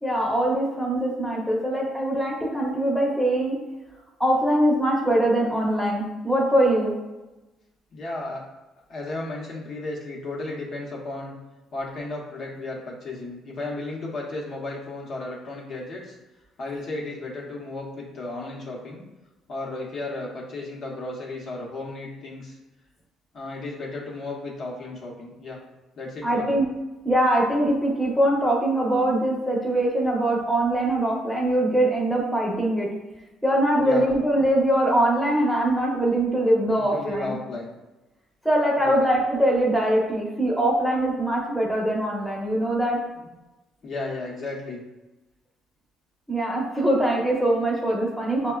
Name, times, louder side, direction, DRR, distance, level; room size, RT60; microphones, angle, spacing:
voice 1, 0.0-3.6 4.2-6.9 26.2-26.7 27.0-32.9 33.4-37.3 38.4-43.0 46.3-48.5, right 1 dB, ahead, -3 dB, 0.9 m, -22 dB
voice 2, 7.9-8.4 8.9-11.3 11.7-16.1 16.6-19.0 19.5-22.6 23.3-25.6 26.0-26.6 33.8-34.1 36.7-37.7 38.8-39.0 43.1-43.3 43.8-44.8 48.4-48.5, left 2 dB, 55° left, -3 dB, 0.9 m, -34 dB
5.4 x 2.2 x 2.3 m, 1.1 s
cardioid pair, 100°, 0 cm